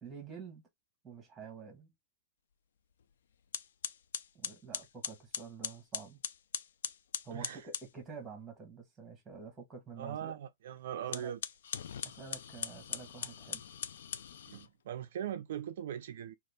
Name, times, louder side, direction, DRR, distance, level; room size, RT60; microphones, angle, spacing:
voice 1, 0.0-0.7 1.0-1.9 4.3-6.2 7.2-10.4 11.1-11.4 12.0-13.6, right 5 dB, 10° right, 1.1 m, -48 dB
sound 1, 3.0-3.1 3.5-7.9 11.0-14.7, left 8 dB, 80° left, 0.3 m, -41 dB
voice 2, 7.3-7.6 10.0-11.4 14.5-16.3, right 10 dB, 65° right, 0.3 m, -40 dB
2.6 x 2.4 x 3.4 m
supercardioid pair, 160°, 0 cm